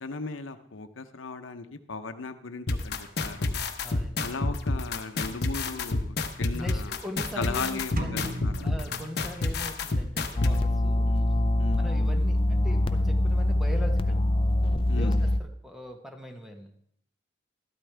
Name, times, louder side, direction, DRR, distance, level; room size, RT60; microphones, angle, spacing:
voice 1, 0.0-3.6 4.2-7.0 7.4-8.7 11.0-11.3 11.6-11.8 14.9-15.2, left 4 dB, 80° left, 9 dB, 0.8 m, -37 dB
sound 1, 2.7-10.5, left 2 dB, 55° left, 0.9 m, -28 dB
voice 2, 3.8-4.3 6.5-8.3 8.6-11.1 11.8-14.2 14.9-16.9, equal, ahead, 4 dB, 1.1 m, -41 dB
sound 2, 8.0-9.9, right 1 dB, 45° right, 0.9 m, -38 dB
sound 3, 10.4-15.4, left 1 dB, 30° left, 0.5 m, -24 dB
13.0 x 12.0 x 3.4 m, 0.70 s
head